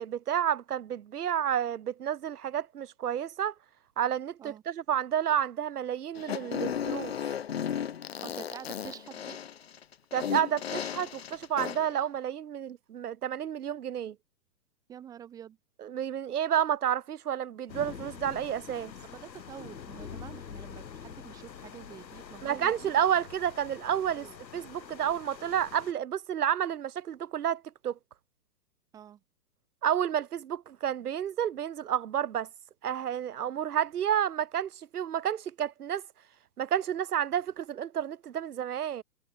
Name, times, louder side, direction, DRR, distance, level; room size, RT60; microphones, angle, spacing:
voice 1, 0.0-3.5 4.0-7.1 10.1-14.2 15.8-18.9 22.4-24.3 24.5-27.9 29.8-32.5 32.8-36.0 36.6-39.0, right 9 dB, 65° right, 2.0 m, -30 dB
Fart, 6.1-11.9, left 8 dB, 40° left, 0.6 m, -35 dB
voice 2, 8.2-9.4 14.9-15.6 19.1-22.9 24.1-24.4 28.9-29.2, right 9 dB, 5° right, 1.6 m, -47 dB
sound 1, 17.7-25.9, left 7 dB, 85° left, 6.9 m, -45 dB
hypercardioid pair, 175°, 50 cm